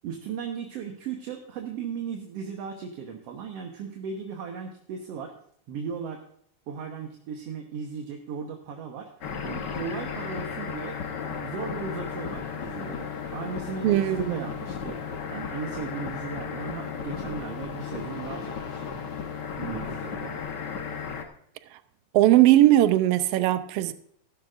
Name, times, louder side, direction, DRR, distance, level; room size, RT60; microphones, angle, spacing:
voice 1, 0.0-5.3 5.7-6.2 6.7-19.0 19.6-20.4, right 6 dB, 65° right, 2.0 m, -37 dB
sound 1, 9.2-21.2, left 6 dB, 55° left, 1.3 m, -34 dB
voice 2, 13.8-14.5 22.1-23.9, right 14 dB, 80° right, 1.4 m, -19 dB
14.5 x 12.5 x 2.5 m
omnidirectional pair, 3.4 m